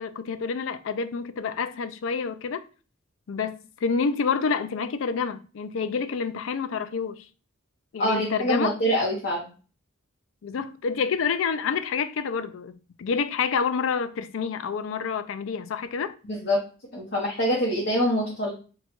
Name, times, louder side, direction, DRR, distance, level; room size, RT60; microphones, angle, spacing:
voice 1, 0.0-2.6 3.3-7.2 7.9-8.7 10.4-12.7 13.0-16.1, left 5 dB, 80° left, 0.4 m, -28 dB
voice 2, 8.0-9.5 16.3-16.6 16.9-18.5, equal, 55° left, 0.9 m, -25 dB
3.8 x 2.3 x 4.4 m
head